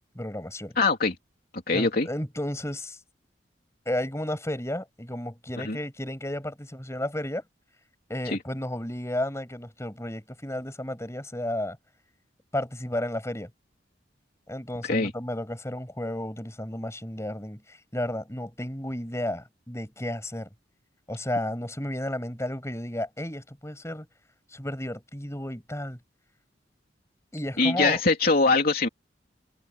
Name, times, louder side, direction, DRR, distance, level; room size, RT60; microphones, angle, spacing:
voice 1, 0.2-0.8 1.7-3.0 3.9-7.4 8.1-11.8 12.5-13.5 14.5-20.5 21.1-24.1 24.5-26.0 27.3-28.0, left 1 dB, 15° left, 7.3 m, -33 dB
voice 2, 0.8-1.1 1.7-2.1 5.6-5.8 8.3-8.4 14.8-15.1 27.6-28.9, left 3 dB, 55° left, 3.1 m, -22 dB
head